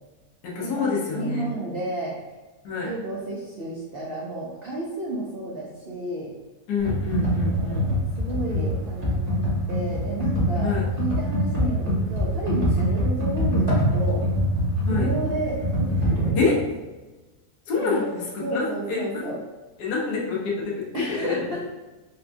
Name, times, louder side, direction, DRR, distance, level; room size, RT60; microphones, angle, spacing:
voice 1, 0.4-1.5 2.6-2.9 6.7-7.9 10.6-10.9 14.9-15.1 16.4-16.6 17.7-19.2 19.8-21.4, left 4 dB, 90° left, -4 dB, 1.4 m, -27 dB
voice 2, 1.1-2.1 2.8-6.3 7.1-9.4 9.7-14.3 14.8-16.4 17.8-18.1 18.4-19.4 20.9-21.6, right 1 dB, 75° right, -4 dB, 0.5 m, -32 dB
Computer keyboard, 6.8-16.3, equal, 30° right, 1.1 m, -24 dB
4.2 x 2.2 x 2.5 m, 1.2 s
omnidirectional pair, 1.7 m